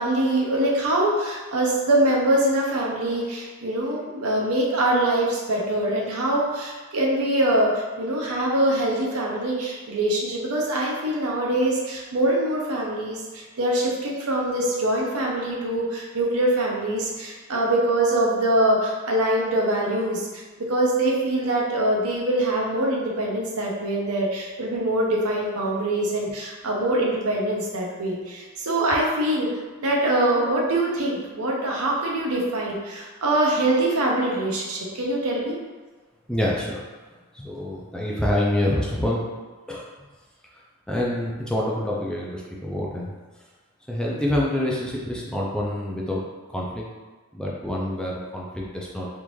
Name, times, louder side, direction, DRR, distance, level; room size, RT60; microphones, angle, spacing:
voice 1, 0.0-20.3 20.7-29.5 29.8-35.6, right 1 dB, 80° right, -2 dB, 0.8 m, -23 dB
voice 2, 36.3-36.8 37.3-39.2 39.7-39.9 40.9-43.1 43.9-46.2 46.5-46.9 47.3-49.1, left 1 dB, 5° left, -4 dB, 0.4 m, -26 dB
3.5 x 2.5 x 3.1 m, 1.3 s
head